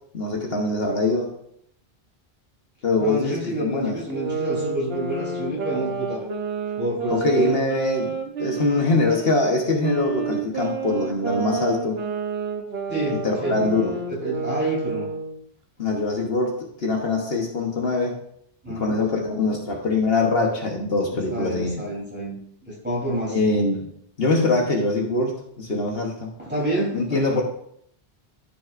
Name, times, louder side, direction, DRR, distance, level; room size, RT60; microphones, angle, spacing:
voice 1, 0.1-1.3 2.8-4.0 7.1-12.0 13.1-14.0 15.8-18.2 18.7-21.8 23.3-23.9 24.2-26.3 26.9-27.4, left 2 dB, 70° left, 1 dB, 1.4 m, -23 dB
voice 2, 3.0-6.3 6.8-7.4 12.9-13.7 14.1-15.1 18.6-19.0 21.3-22.4 22.7-23.4 26.4-27.4, right 1 dB, 10° right, -5 dB, 3.5 m, -28 dB
sound 1, 4.1-9.3 9.8-15.4, right 4 dB, 70° right, 1.2 m, -29 dB
13.5 x 5.9 x 2.5 m, 0.69 s
omnidirectional pair, 1.1 m